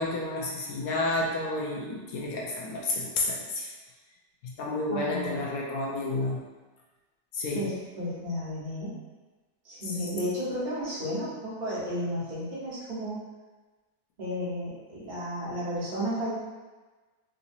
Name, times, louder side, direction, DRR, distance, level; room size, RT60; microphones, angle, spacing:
voice 1, 0.0-3.7 4.4-6.4 7.3-7.7 9.9-10.0, left 2 dB, 70° left, -3 dB, 0.9 m, -30 dB
voice 2, 4.9-5.5 7.5-9.0 9.6-13.2 14.2-16.3, equal, 30° right, -9 dB, 1.0 m, -33 dB
3.8 x 2.7 x 2.6 m, 1.3 s
omnidirectional pair, 1.9 m